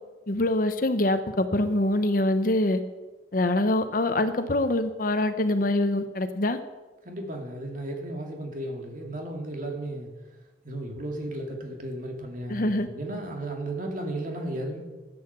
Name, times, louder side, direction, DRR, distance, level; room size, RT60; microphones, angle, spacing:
voice 1, 0.3-2.8 3.3-6.6 12.5-12.9, left 1 dB, 50° left, 10 dB, 0.8 m, -24 dB
voice 2, 7.0-10.1 10.6-14.8, right 1 dB, 45° right, 2 dB, 2.2 m, -34 dB
12.0 x 8.8 x 6.7 m, 1.2 s
head